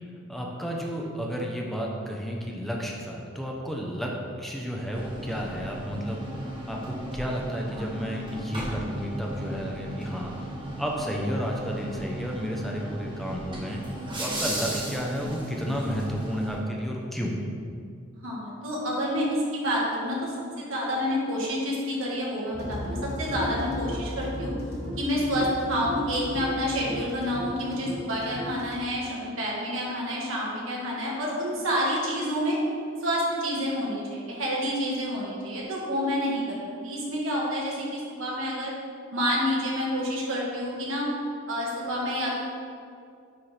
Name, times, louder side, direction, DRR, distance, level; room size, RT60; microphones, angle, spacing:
voice 1, 0.3-13.8 14.2-17.3, equal, ahead, -2 dB, 0.7 m, -32 dB
sound 1, 4.9-16.6, right 1 dB, 25° right, 1.2 m, -36 dB
voice 2, 18.2-19.2 19.5-20.3 20.6-24.5 25.0-32.6 33.0-38.7 39.1-41.1 41.5-42.3, equal, 80° right, -4 dB, 1.5 m, -28 dB
sound 2, 22.5-28.8, equal, 50° left, 1.1 m, -36 dB
9.8 x 4.3 x 3.3 m, 2.3 s
head